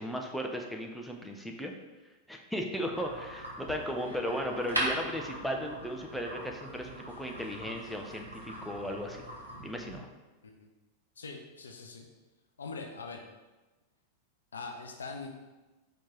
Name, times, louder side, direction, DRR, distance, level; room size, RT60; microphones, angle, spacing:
voice 1, 0.0-1.7 2.3-9.2 9.6-10.1, equal, ahead, 2 dB, 0.5 m, -36 dB
sound 1, 2.9-10.0, right 1 dB, 80° right, 0.9 m, -40 dB
voice 2, 11.2-12.1 12.6-13.2 14.5-15.3, left 4 dB, 70° left, 3 dB, 0.5 m, -42 dB
4.5 x 2.9 x 3.6 m, 1.1 s
figure-of-eight pair, 90°, 0 cm